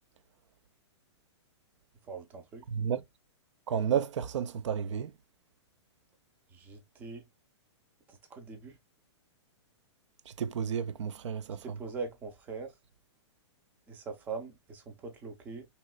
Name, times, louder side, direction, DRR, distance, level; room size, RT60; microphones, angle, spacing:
voice 1, 2.1-2.6 6.5-7.2 8.3-8.8 11.6-12.7 13.9-15.6, right 4 dB, 10° right, 0.4 m, -41 dB
voice 2, 2.7-3.0 3.7-5.1 10.4-11.6, right 8 dB, 80° right, 0.4 m, -31 dB
2.9 x 2.9 x 2.2 m
hypercardioid pair, 160°, 15 cm